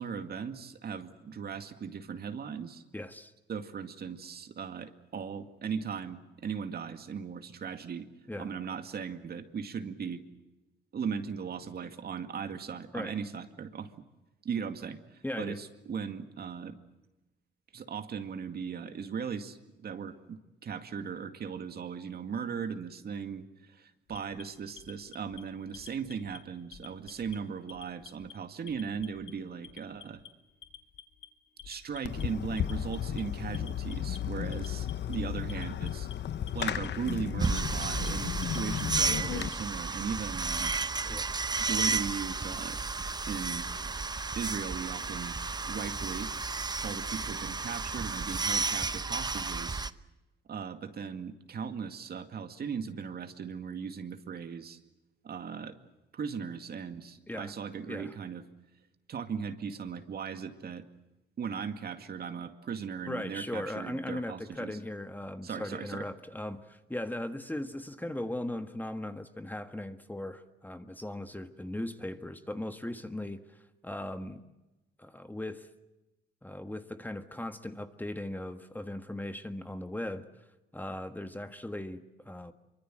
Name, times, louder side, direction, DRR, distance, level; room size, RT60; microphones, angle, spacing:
voice 1, 0.0-2.8 3.5-8.1 8.4-10.2 10.9-13.9 14.4-16.8 17.7-30.2 31.6-36.1 36.5-40.7 41.7-42.8 43.2-43.7 44.4-45.4 45.7-46.3 46.8-49.8 50.5-54.8 55.2-55.8 56.1-58.4 59.1-60.9 61.4-64.8 65.4-66.0, right 6 dB, 50° right, 8 dB, 2.2 m, -38 dB
voice 2, 2.9-3.3 8.3-8.5 12.9-13.1 15.2-15.6 41.0-41.3 57.3-57.5 57.9-58.1 63.1-74.4 75.0-75.7 76.4-80.2 80.7-82.5, left 1 dB, 10° left, 8 dB, 1.5 m, -38 dB
Alarm, 24.1-25.4 25.7-26.4 26.7-27.4 27.7-28.3 28.7-29.3 29.6-30.3 30.6-31.3 31.6-32.2 32.6-33.2 33.5-34.2 34.5-35.2 35.5-36.1 36.5-37.1 37.4-38.1 38.4-39.6, left 8 dB, 85° left, 2.7 m, -49 dB
Fireworks, 32.0-39.5, left 10 dB, 60° left, 1.0 m, -34 dB
sound 1, 37.4-49.9, right 3 dB, 20° right, 0.9 m, -32 dB
25.5 x 24.0 x 7.6 m, 1.0 s
cardioid pair, 90°, 20 cm